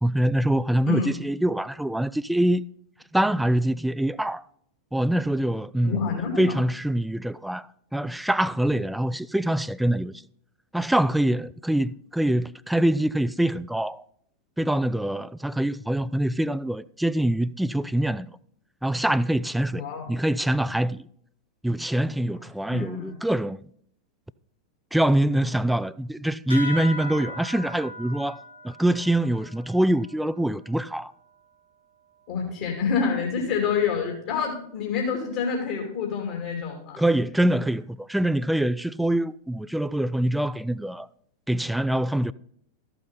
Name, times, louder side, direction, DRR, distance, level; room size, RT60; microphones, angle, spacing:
voice 1, 0.0-2.6 3.1-4.4 4.9-10.1 10.7-14.0 14.6-18.3 18.8-19.8 20.1-21.0 21.6-23.6 24.9-31.1 37.0-41.1 41.5-42.3, right 1 dB, 5° right, 0.4 m, -24 dB
voice 2, 5.8-6.6 19.7-20.1 22.7-23.2 32.3-37.0, left 6 dB, 50° left, 2.9 m, -27 dB
sound 1, 26.5-31.4, left 1 dB, 85° left, 1.4 m, -39 dB
13.5 x 8.4 x 4.0 m
figure-of-eight pair, 90°, 0 cm